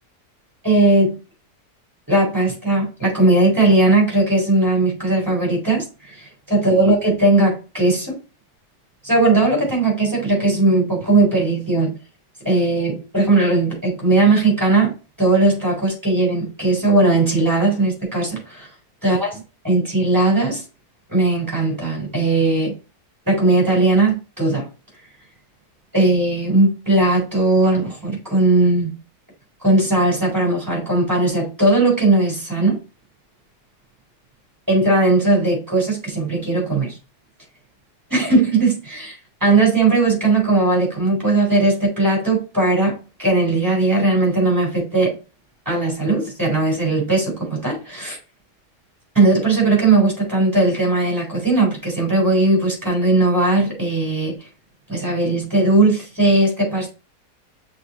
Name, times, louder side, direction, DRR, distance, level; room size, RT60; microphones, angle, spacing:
voice 1, 0.6-1.2 2.1-8.2 9.0-11.9 12.4-14.9 15.2-18.7 19.0-20.6 21.1-22.7 23.3-24.7 25.9-29.0 29.6-32.8 34.7-37.0 38.1-39.2 39.4-45.2 45.7-48.2 49.1-54.4 54.9-56.9, right 2 dB, 10° right, 3.8 m, -18 dB
6.4 x 4.0 x 4.2 m
omnidirectional pair, 1.7 m